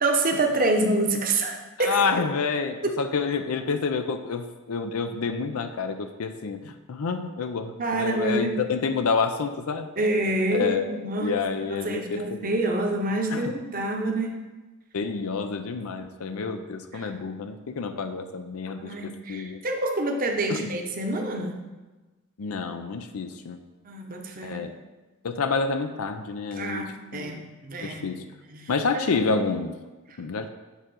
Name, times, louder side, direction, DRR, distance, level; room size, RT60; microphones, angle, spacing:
voice 1, 0.0-2.2 2.8-3.0 7.8-8.6 10.0-14.4 16.3-16.6 16.9-17.1 18.8-21.6 23.8-24.6 26.5-28.2 28.5-29.1 30.1-30.2, right 2 dB, 40° right, 3 dB, 0.9 m, -27 dB
voice 2, 1.8-9.9 10.5-12.5 13.3-13.4 14.9-19.6 20.5-20.6 22.4-23.6 24.4-24.7 25.2-26.8 27.1-27.3 27.8-28.2 28.7-29.7 30.2-30.5, left 5 dB, 70° left, 8 dB, 0.5 m, -28 dB
8.2 x 3.7 x 6.2 m, 1.2 s
head